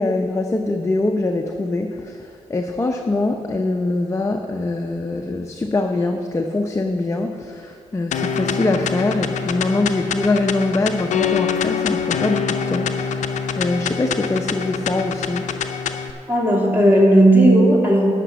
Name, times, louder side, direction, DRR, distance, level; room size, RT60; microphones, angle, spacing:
voice 1, 0.0-15.5, left 2 dB, 25° left, 3 dB, 0.7 m, -23 dB
sound 1, 8.1-16.1, left 7 dB, 85° left, 0.6 m, -25 dB
voice 2, 16.3-18.1, right 1 dB, 15° right, -2 dB, 2.5 m, -14 dB
9.8 x 6.0 x 8.4 m, 2.4 s
cardioid pair, 75°, 12 cm